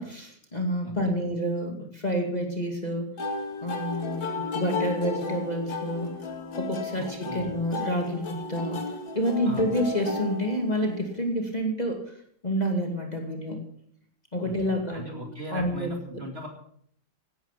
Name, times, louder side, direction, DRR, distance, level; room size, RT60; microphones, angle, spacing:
voice 1, 0.0-3.1 3.6-6.1 6.6-8.8 9.1-12.0 12.4-13.6 14.3-16.2, equal, 20° left, 1 dB, 2.4 m, -29 dB
voice 2, 0.8-1.2 7.0-7.5 9.4-9.7 14.4-16.5, equal, 30° right, 2 dB, 2.8 m, -39 dB
sound 1, 3.2-11.1, left 3 dB, 85° left, 2.9 m, -34 dB
Bass guitar, 4.4-8.8, left 2 dB, 15° right, 2.2 m, -47 dB
16.5 x 12.5 x 5.9 m, 0.63 s
omnidirectional pair, 2.0 m